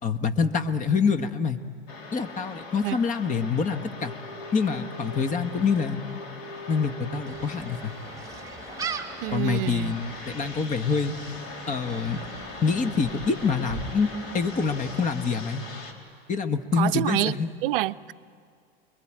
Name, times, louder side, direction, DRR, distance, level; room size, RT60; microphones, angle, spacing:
voice 1, 0.0-1.6 2.1-4.1 4.5-6.0 6.7-7.9 9.3-11.2 11.7-12.2 12.6-15.6 16.3-17.5, left 5 dB, 25° left, 9 dB, 1.6 m, -26 dB
sound 1, 1.9-15.9, left 3 dB, 45° left, 3.9 m, -40 dB
Gull seagull, 7.2-15.1, right 6 dB, 10° right, 2.5 m, -41 dB
voice 2, 9.2-9.9 16.8-17.3 17.6-18.1, right 17 dB, 60° right, 16 dB, 0.6 m, -27 dB
29.0 x 22.5 x 8.9 m, 2.2 s
hypercardioid pair, 95°, 31 cm